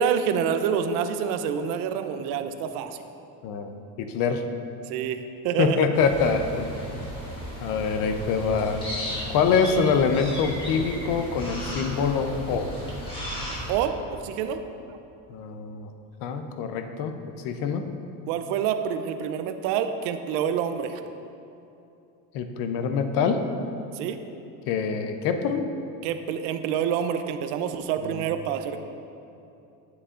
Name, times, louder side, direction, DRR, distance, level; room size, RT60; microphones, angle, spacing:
voice 1, 0.0-3.0 4.9-5.8 13.7-14.6 18.3-21.0 23.9-24.2 26.0-28.8, right 8 dB, 75° right, 9 dB, 0.6 m, -27 dB
voice 2, 3.4-4.4 5.6-6.8 7.6-8.8 9.3-12.7 15.3-15.9 16.2-17.8 22.3-23.4 24.7-25.6 28.0-28.2, left 5 dB, 55° left, 7 dB, 0.7 m, -25 dB
sound 1, 5.9-13.7, equal, 15° left, 1.7 m, -35 dB
9.9 x 8.0 x 2.5 m, 2.7 s
cardioid pair, 150°, 39 cm